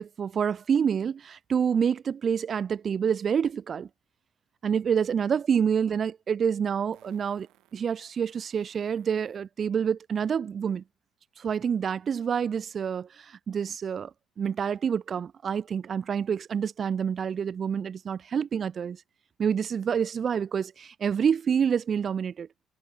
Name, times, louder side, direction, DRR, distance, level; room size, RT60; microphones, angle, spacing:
voice 1, 0.0-3.9 4.6-7.5 7.7-10.8 11.4-14.1 14.4-19.0 19.4-22.5, right 7 dB, 40° right, 0.5 m, -27 dB
Fart, 5.8-5.9 6.9-9.5 11.9-12.0, right 17 dB, 85° right, 3.2 m, -64 dB
cardioid pair, 115°, 0 cm